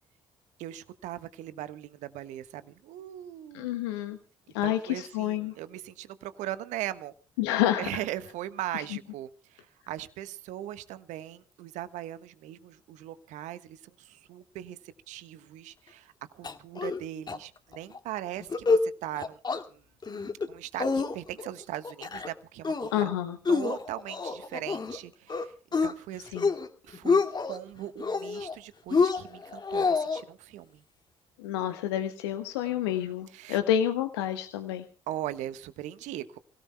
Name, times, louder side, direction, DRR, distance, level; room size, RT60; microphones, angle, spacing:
voice 1, 0.6-3.7 4.6-7.1 7.8-19.4 19.7-19.8 20.5-23.1 23.5-25.5 25.8-26.6 26.8-30.8 32.6-33.6 35.1-36.4, right 13 dB, 70° right, 13 dB, 1.3 m, -39 dB
voice 2, 3.5-4.2 4.5-5.5 7.4-8.0 22.9-23.4 26.3-26.5 31.4-34.8, left 11 dB, 80° left, 8 dB, 1.3 m, -29 dB
sound 1, 16.4-17.0 17.3-17.4 17.7-18.0 18.4-18.9 19.2-19.6 20.0-20.5 20.8-21.5 21.8-22.3 22.6-23.0 23.5-25.0 25.3-25.9 26.3-26.7 26.9-27.6 28.0-28.6 28.9-30.2, left 4 dB, 35° left, 2.2 m, -27 dB
29.5 x 17.5 x 2.3 m, 0.37 s
hypercardioid pair, 55°, 13 cm